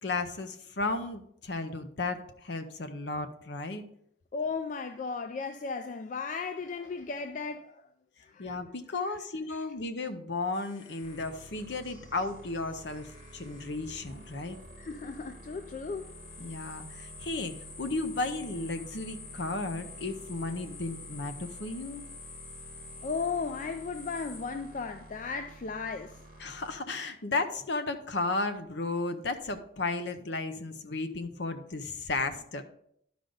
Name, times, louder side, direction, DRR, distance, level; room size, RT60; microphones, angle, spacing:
voice 1, 0.0-3.8 8.4-14.6 16.4-22.0 26.4-32.6, left 3 dB, 60° left, 0.7 m, -34 dB
voice 2, 4.3-7.8 8.2-8.5 9.1-9.2 9.5-9.7 14.8-16.0 23.0-26.2, left 4 dB, 40° left, 0.3 m, -35 dB
sound 1, 10.5-25.1 25.7-26.8, left 4 dB, 90° left, 1.3 m, -50 dB
sound 2, 11.0-26.8, right 1 dB, 45° right, 1.1 m, -50 dB
11.5 x 5.2 x 3.9 m
head